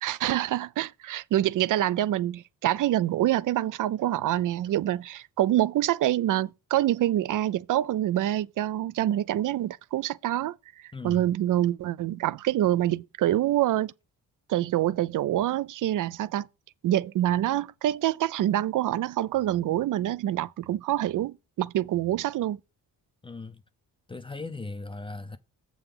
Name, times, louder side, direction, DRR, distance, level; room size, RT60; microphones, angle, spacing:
voice 1, 0.0-10.6 11.0-13.9 14.5-16.5 16.8-22.6, right 13 dB, 60° right, 0.4 m, -26 dB
voice 2, 10.9-11.3 23.2-23.6 24.1-25.4, left 3 dB, 15° left, 0.5 m, -38 dB
7.8 x 3.9 x 6.8 m
cardioid pair, 130°, 36 cm